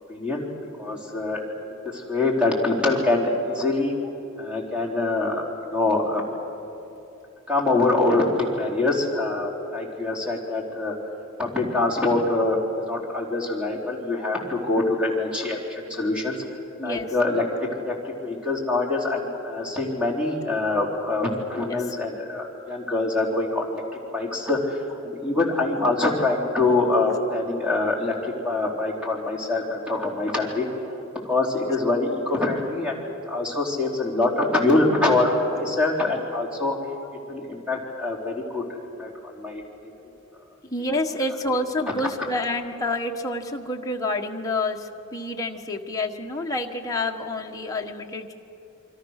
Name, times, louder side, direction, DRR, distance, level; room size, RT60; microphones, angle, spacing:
voice 1, 0.1-0.5 0.8-3.9 4.4-6.2 7.5-10.9 11.4-12.6 12.9-16.4 16.8-17.5 17.8-17.9 18.2-23.8 24.1-30.7 31.2-33.0 33.3-36.7 37.3-38.6 39.0-39.1 39.3-39.6, left 2 dB, 5° right, -2 dB, 3.9 m, -24 dB
voice 2, 16.8-17.1 21.6-21.9 27.0-27.1 40.6-48.3, left 2 dB, 15° left, 1 dB, 1.4 m, -28 dB
27.5 x 24.5 x 6.6 m, 2.8 s
head